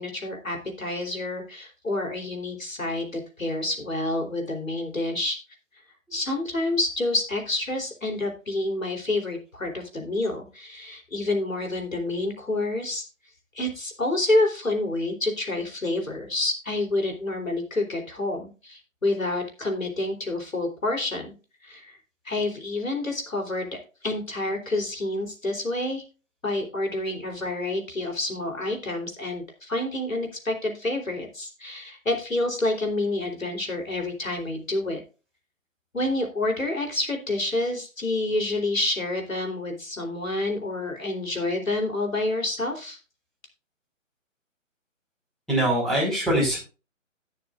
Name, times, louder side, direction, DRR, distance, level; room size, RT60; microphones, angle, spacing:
voice 1, 0.0-5.4 6.1-13.0 13.6-21.3 21.6-22.0 22.3-26.0 26.4-35.0 35.9-43.0, left 2 dB, 75° left, 2 dB, 3.9 m, -28 dB
voice 2, 45.5-46.6, right 1 dB, ahead, -5 dB, 4.9 m, -23 dB
18.5 x 6.7 x 2.5 m, 0.32 s
figure-of-eight pair, 140°, 40 cm